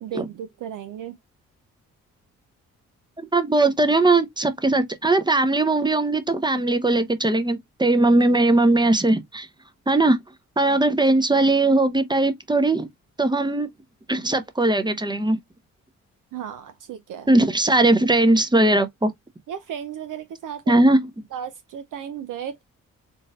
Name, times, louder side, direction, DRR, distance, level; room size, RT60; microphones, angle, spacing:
voice 1, 0.0-1.1 16.3-17.3 19.5-20.8 21.3-22.6, right 8 dB, 55° right, 0.5 m, -34 dB
voice 2, 3.2-9.5 9.9-10.2 10.6-12.9 13.2-13.7 14.1-15.4 17.3-19.1 20.7-21.0, right 2 dB, 10° right, 0.7 m, -19 dB
3.8 x 2.5 x 2.4 m
hypercardioid pair, 40°, 37 cm